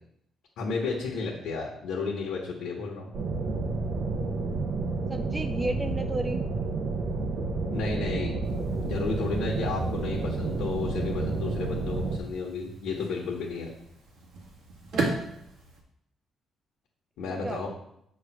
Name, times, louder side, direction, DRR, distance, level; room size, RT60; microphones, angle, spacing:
voice 1, 0.6-3.1 7.7-8.3 8.8-13.7 17.2-17.7, left 4 dB, 80° left, -2 dB, 1.4 m, -32 dB
sound 1, 3.1-12.2, right 3 dB, 55° right, 0.8 m, -30 dB
voice 2, 5.1-6.4 14.9-15.3 17.3-17.7, right 2 dB, 20° right, 7 dB, 0.4 m, -33 dB
sound 2, 8.4-15.8, right 3 dB, 80° right, 1.6 m, -38 dB
6.7 x 3.2 x 6.0 m, 0.72 s
cardioid pair, 90°, 0 cm